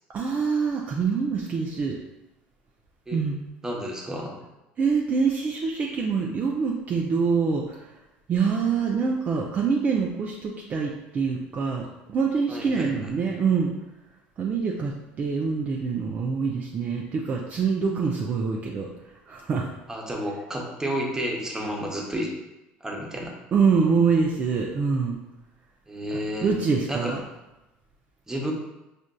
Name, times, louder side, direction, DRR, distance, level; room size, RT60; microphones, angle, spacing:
voice 1, 0.1-2.0 3.1-3.4 4.8-7.8 8.3-11.8 12.1-13.7 14.4-18.9 19.3-19.7 23.5-25.2 26.1-27.2, right 5 dB, 40° right, -1 dB, 0.4 m, -25 dB
voice 2, 3.6-4.3 12.5-13.1 19.9-22.3 22.8-23.3 25.9-26.5 26.9-27.1 28.3-28.5, equal, 15° right, -1 dB, 0.8 m, -31 dB
4.9 x 2.5 x 2.2 m, 0.99 s
supercardioid pair, 95°, 4 cm